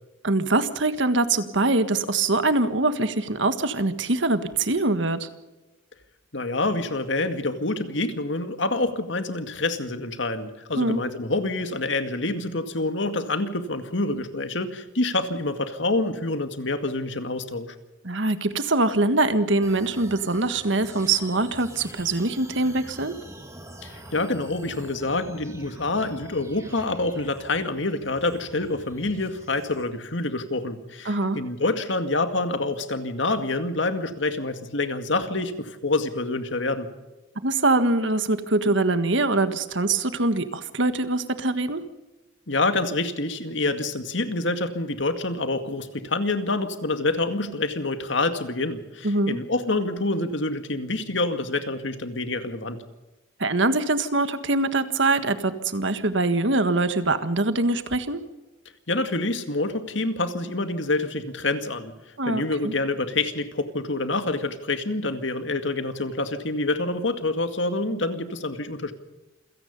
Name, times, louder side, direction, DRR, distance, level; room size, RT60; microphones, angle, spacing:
voice 1, 0.2-5.3 10.8-11.0 18.0-23.1 31.0-31.4 37.4-41.8 49.0-49.4 53.4-58.2 62.2-62.7, right 2 dB, 70° right, 10 dB, 1.6 m, -23 dB
voice 2, 6.3-17.7 23.8-36.9 42.5-52.8 58.9-61.9 62.3-68.9, left 2 dB, 65° left, 8 dB, 2.1 m, -27 dB
sound 1, 19.6-29.8, right 1 dB, 15° right, 3.9 m, -45 dB
28.0 x 17.0 x 5.5 m, 1.1 s
head